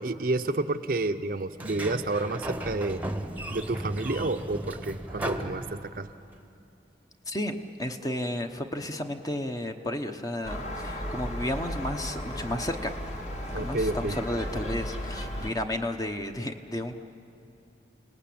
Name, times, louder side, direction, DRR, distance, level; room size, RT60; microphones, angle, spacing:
voice 1, 0.0-3.0 3.5-6.1 13.5-14.2, right 2 dB, 50° right, 8 dB, 0.7 m, -30 dB
Sliding door, 1.5-6.3, right 1 dB, 10° right, 1.0 m, -36 dB
voice 2, 7.3-12.9 13.5-17.0, left 1 dB, 20° left, 6 dB, 1.0 m, -32 dB
Gull seagull, 10.4-15.5, equal, 40° left, 2.1 m, -35 dB
29.5 x 19.0 x 8.7 m, 2.6 s
head